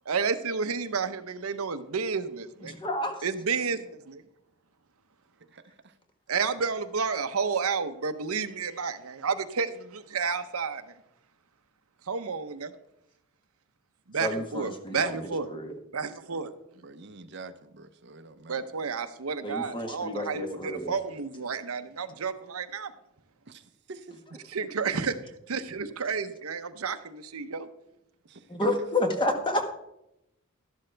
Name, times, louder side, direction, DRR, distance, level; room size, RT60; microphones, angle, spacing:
voice 1, 0.1-2.8 3.2-3.8 4.1-4.2 6.3-10.8 12.1-12.7 14.1-15.5 15.9-16.5 18.5-22.9 24.5-25.2 25.5-27.7, right 5 dB, 85° right, 0.8 m, -31 dB
voice 2, 2.7-3.2 14.2-15.7 19.4-20.9 28.5-29.6, left 1 dB, 20° left, 1.4 m, -30 dB
voice 3, 5.4-6.0 16.7-18.9 23.5-24.2 28.2-28.9, right 3 dB, 50° right, 0.7 m, -46 dB
12.5 x 11.5 x 3.4 m
head